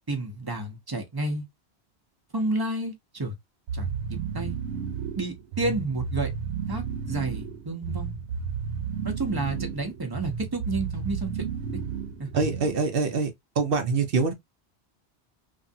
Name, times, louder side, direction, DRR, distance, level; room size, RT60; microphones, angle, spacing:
voice 1, 0.1-1.5 2.3-3.3 3.7-4.6 5.2-6.3 6.7-8.1 9.0-11.3 12.2-12.4, right 2 dB, 25° right, 0.8 m, -30 dB
sound 1, 3.7-12.9, right 6 dB, 90° right, 1.0 m, -33 dB
voice 2, 12.3-13.3 13.6-14.3, right 4 dB, 60° right, 0.9 m, -24 dB
3.1 x 2.5 x 2.6 m
omnidirectional pair, 1.1 m